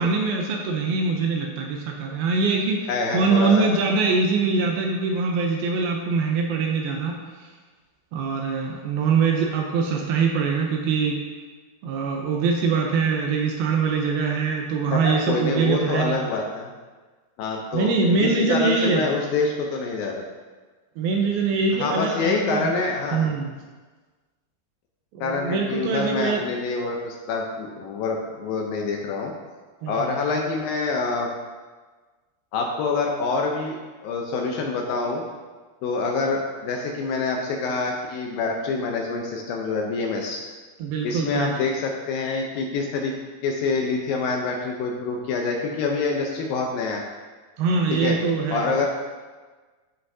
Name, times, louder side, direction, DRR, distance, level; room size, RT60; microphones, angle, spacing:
voice 1, 0.0-7.2 8.1-11.2 11.8-16.2 17.7-19.1 21.0-22.7 23.1-23.5 25.1-26.4 29.8-30.2 40.8-41.5 47.6-48.9, right 4 dB, 80° right, 1 dB, 2.3 m, -23 dB
voice 2, 2.9-3.8 14.9-16.7 17.4-17.9 18.2-20.2 21.8-23.3 25.2-29.3 29.9-31.3 32.5-33.8 34.0-35.2 35.8-40.4 41.0-43.2 43.4-47.0 47.9-48.2 48.5-48.9, left 4 dB, 80° left, 1 dB, 2.1 m, -26 dB
13.5 x 5.6 x 2.7 m, 1.4 s
omnidirectional pair, 4.7 m